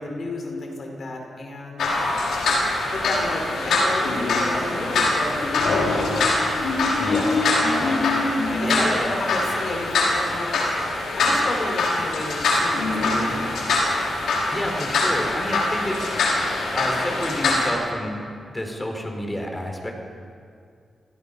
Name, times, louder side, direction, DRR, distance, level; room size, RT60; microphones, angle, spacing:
voice 1, 0.0-1.9 2.9-6.7 7.4-7.8 8.5-10.6 10.8-13.5, left 2 dB, 60° left, 1 dB, 5.2 m, -32 dB
sound 1, 1.8-17.7, left 2 dB, 85° left, 5.8 m, -23 dB
voice 2, 7.0-7.3 7.8-8.0 8.4-9.2 14.5-16.1 16.7-18.2 18.5-19.9, equal, 15° left, 2 dB, 4.9 m, -29 dB
28.0 x 18.0 x 5.6 m, 2.3 s
cardioid pair, 70°, 0 cm